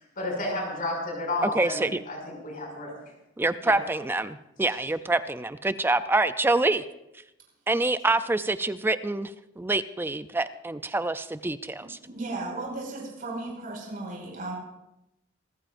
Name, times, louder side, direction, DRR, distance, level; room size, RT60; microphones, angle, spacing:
voice 1, 0.2-2.9 3.6-3.8, left 2 dB, 45° left, -1 dB, 6.4 m, -32 dB
voice 2, 1.4-2.0 3.4-6.8 7.7-9.3 9.6-12.0, right 2 dB, 10° right, 12 dB, 0.4 m, -26 dB
voice 3, 12.0-14.5, right 2 dB, 50° right, -3 dB, 5.3 m, -35 dB
26.5 x 14.0 x 2.6 m, 0.88 s
head